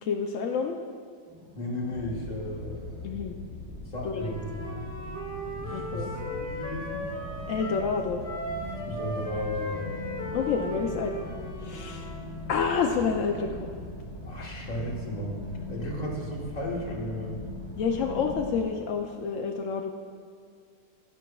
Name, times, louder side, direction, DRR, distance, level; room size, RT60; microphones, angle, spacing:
voice 1, 0.0-0.8 3.0-3.4 4.0-4.3 5.7-6.1 7.5-8.2 10.3-11.2 11.6-12.1 12.5-13.7 17.8-19.9, left 5 dB, 80° left, 3 dB, 0.7 m, -28 dB
sound 1, 1.3-18.4, left 2 dB, 60° right, 1.8 m, -44 dB
voice 2, 1.5-3.1 3.8-4.9 5.6-7.1 8.8-9.9 14.2-17.4, equal, 25° left, -3 dB, 1.3 m, -35 dB
sound 2, 1.9-18.6, left 1 dB, 45° left, 1.6 m, -43 dB
Wind instrument woodwind instrument, 4.1-7.9 8.2-12.2, equal, 10° right, 1.4 m, -37 dB
11.0 x 10.5 x 2.3 m, 2.2 s
omnidirectional pair, 1.9 m